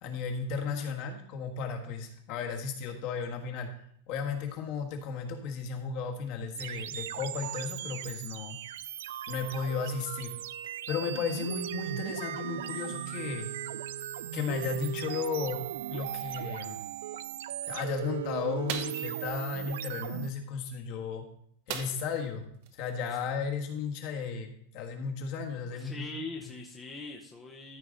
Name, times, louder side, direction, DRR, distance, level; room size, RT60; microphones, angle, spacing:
voice 1, 0.0-3.7 4.1-8.6 9.3-10.3 10.9-13.5 14.3-16.8 17.6-21.2 21.7-26.0, left 5 dB, 40° left, 2 dB, 1.5 m, -34 dB
sound 1, 6.5-20.3, right 12 dB, 75° right, 0.4 m, -38 dB
sound 2, 18.7-19.1 21.7-22.3 22.6-22.7 23.1-23.3, right 8 dB, 50° right, 1.0 m, -37 dB
voice 2, 25.7-27.8, left 2 dB, 10° left, -1 dB, 0.8 m, -41 dB
13.5 x 4.8 x 3.8 m, 0.69 s
supercardioid pair, 165°, 0 cm